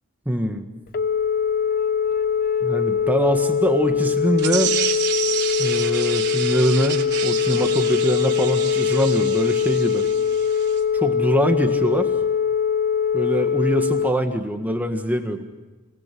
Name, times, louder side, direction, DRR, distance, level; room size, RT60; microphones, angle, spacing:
voice 1, 0.2-0.6 2.6-4.8 5.6-10.0 10.9-12.1 13.1-15.5, equal, 10° right, 4 dB, 1.6 m, -23 dB
Telephone, 0.9-14.1, left 7 dB, 45° left, 0.8 m, -22 dB
sound 1, 4.4-10.8, right 9 dB, 55° right, 3.3 m, -29 dB
28.5 x 19.0 x 7.8 m, 1.2 s
head